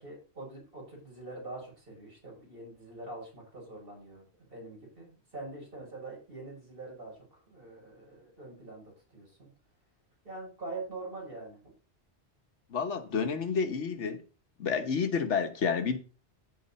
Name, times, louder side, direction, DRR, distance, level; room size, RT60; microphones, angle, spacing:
voice 1, 0.0-9.5 10.2-11.7, right 2 dB, 50° right, 6.3 m, -44 dB
voice 2, 12.7-14.2 14.6-16.0, left 6 dB, 80° left, 1.5 m, -30 dB
15.0 x 5.0 x 4.3 m
omnidirectional pair, 1.2 m